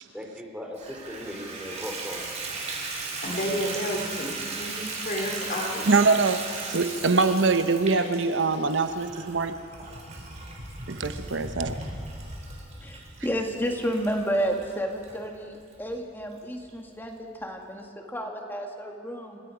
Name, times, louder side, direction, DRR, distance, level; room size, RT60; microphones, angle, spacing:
voice 1, 0.1-2.3, equal, 5° right, 1 dB, 2.9 m, -38 dB
Water tap faucet / Bathtub (filling or washing), 0.8-15.1 15.7-15.8 16.3-16.4 16.7-16.8, right 4 dB, 40° right, 4.2 m, -37 dB
voice 2, 3.2-5.8, equal, 45° left, 2 dB, 3.0 m, -31 dB
voice 3, 5.9-9.6 10.9-11.7, right 4 dB, 75° right, 9 dB, 0.9 m, -23 dB
sound 1, 8.2-16.6, equal, 55° right, 6.1 m, -42 dB
voice 4, 12.8-19.4, equal, 10° left, 2 dB, 2.0 m, -31 dB
29.0 x 17.5 x 5.0 m, 2.4 s
head